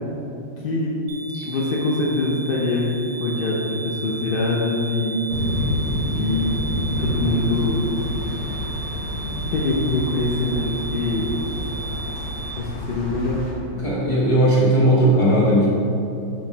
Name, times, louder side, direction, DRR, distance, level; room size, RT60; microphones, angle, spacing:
voice 1, 0.6-1.0 1.4-2.9 3.2-5.4 6.2-7.9 9.5-11.3 12.5-13.4, left 2 dB, 70° left, -3 dB, 0.5 m, -24 dB
sound 1, 1.1-12.5, right 3 dB, 80° right, 1.3 m, -35 dB
sound 2, 5.3-13.5, left 1 dB, 50° left, 2.0 m, -28 dB
voice 2, 13.8-15.7, right 1 dB, 20° left, -7 dB, 1.5 m, -17 dB
6.3 x 3.5 x 5.9 m, 2.9 s
omnidirectional pair, 1.9 m